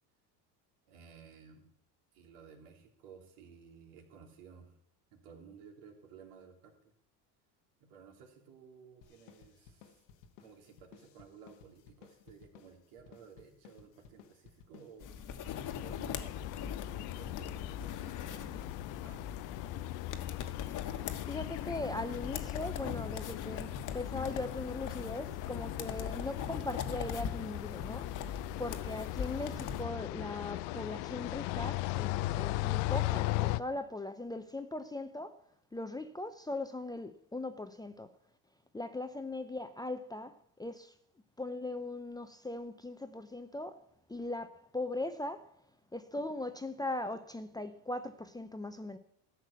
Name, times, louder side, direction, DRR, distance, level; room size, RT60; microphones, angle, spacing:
voice 1, 0.9-1.7 2.1-4.8 5.1-6.9 7.8-10.0 10.4-15.1 15.8-19.3, right 6 dB, 75° right, 3.4 m, -56 dB
sound 1, 9.0-26.8, left 8 dB, 90° left, 1.5 m, -58 dB
sound 2, 15.0-29.8, left 7 dB, 40° left, 1.4 m, -42 dB
sound 3, 15.4-33.6, left 17 dB, 65° left, 0.6 m, -38 dB
voice 2, 21.3-35.4 35.7-38.1 38.7-40.9 41.4-43.8 44.1-45.5 45.9-49.0, left 2 dB, 10° left, 0.6 m, -39 dB
13.5 x 6.0 x 8.2 m
supercardioid pair, 105°, 45 cm